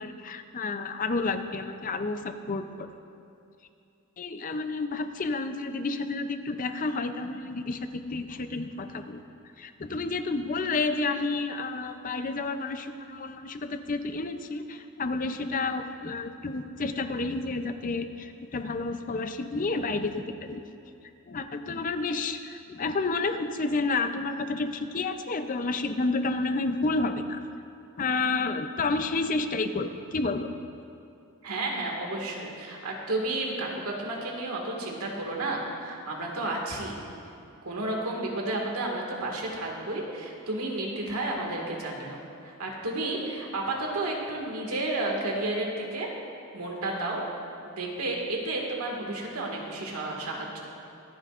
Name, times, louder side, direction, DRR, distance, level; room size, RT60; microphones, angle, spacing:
voice 1, 0.0-2.9 4.2-9.2 9.6-20.6 21.3-27.4 28.0-30.6, left 3 dB, 35° left, 8 dB, 0.5 m, -30 dB
voice 2, 31.4-37.0 37.7-46.1 46.5-47.2 47.7-50.6, right 2 dB, 85° right, -1 dB, 1.9 m, -32 dB
24.5 x 9.0 x 2.5 m, 2.6 s
head